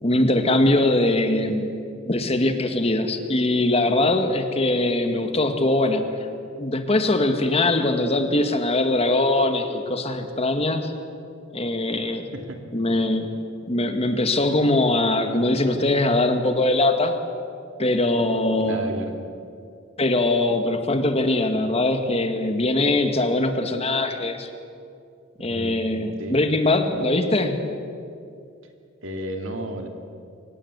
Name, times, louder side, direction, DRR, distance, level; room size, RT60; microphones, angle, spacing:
voice 1, 0.0-1.8 2.1-6.2 6.6-10.9 11.5-12.3 12.7-13.4 13.7-17.2 17.8-18.9 20.0-24.5 25.4-27.7, left 2 dB, 30° left, 7 dB, 1.7 m, -22 dB
voice 2, 18.6-19.1 25.4-25.9 26.2-26.4 29.0-29.9, right 1 dB, 70° right, 4 dB, 2.8 m, -32 dB
24.5 x 19.0 x 8.1 m, 2.5 s
head